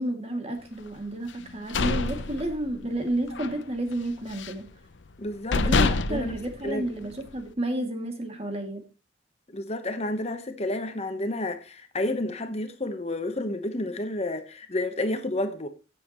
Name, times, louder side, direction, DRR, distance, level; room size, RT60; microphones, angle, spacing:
voice 1, 0.0-4.7 5.6-8.9, right 1 dB, 35° right, 2.3 m, -31 dB
sound 1, 1.4-3.0 3.3-3.6 3.9-4.7 5.1-5.2 5.5-7.3, left 3 dB, 90° left, 0.8 m, -27 dB
voice 2, 5.2-5.6 5.8-6.4 6.6-6.9 9.5-15.7, left 1 dB, 35° left, 1.0 m, -30 dB
16.5 x 7.6 x 3.0 m
head